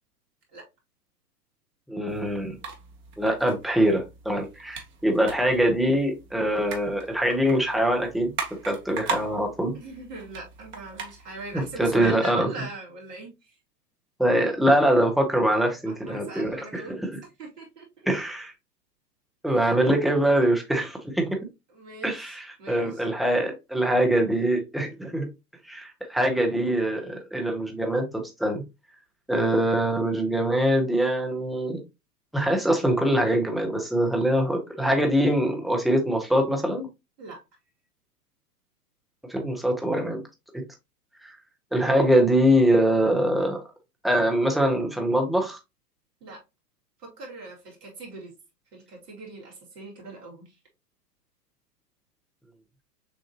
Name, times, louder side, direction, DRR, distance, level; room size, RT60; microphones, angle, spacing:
voice 1, 1.9-2.6 3.2-8.3 8.6-9.7 11.5-12.5 14.2-17.2 18.0-18.5 19.4-21.4 22.0-25.3 25.7-28.6 29.3-31.8 32.3-36.9 39.3-40.2 41.2-41.3 41.7-43.6 44.0-45.6, right 1 dB, ahead, 2 dB, 0.8 m, -23 dB
sound 1, 2.1-12.1, right 4 dB, 25° right, 1.1 m, -39 dB
voice 2, 9.7-13.5 15.9-17.0 17.4-17.9 19.5-19.6 21.7-23.0 37.2-37.4 46.2-46.4 47.0-48.3 48.7-50.6, right 3 dB, 75° right, -2 dB, 2.6 m, -40 dB
6.6 x 2.6 x 2.9 m, 0.24 s
hypercardioid pair, 110°, 49 cm